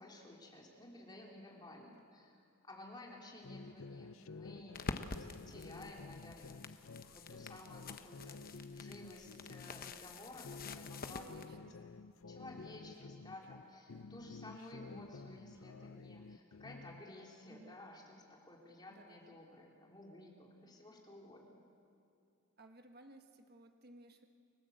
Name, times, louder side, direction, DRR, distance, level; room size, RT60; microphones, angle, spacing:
voice 1, 0.0-2.4 2.6-6.8 7.1-11.6 12.3-21.6, left 1 dB, 20° left, -1 dB, 3.5 m, -54 dB
sound 1, 3.4-9.9 10.3-13.6 13.9-17.0, left 4 dB, 75° left, 0.6 m, -52 dB
sound 2, 4.7-11.5, left 3 dB, 45° left, 1.0 m, -48 dB
voice 2, 11.1-11.8 17.5-17.8 18.9-19.3 22.6-24.3, right 1 dB, 50° right, 5 dB, 1.4 m, -58 dB
30.0 x 19.0 x 8.0 m, 2.6 s
head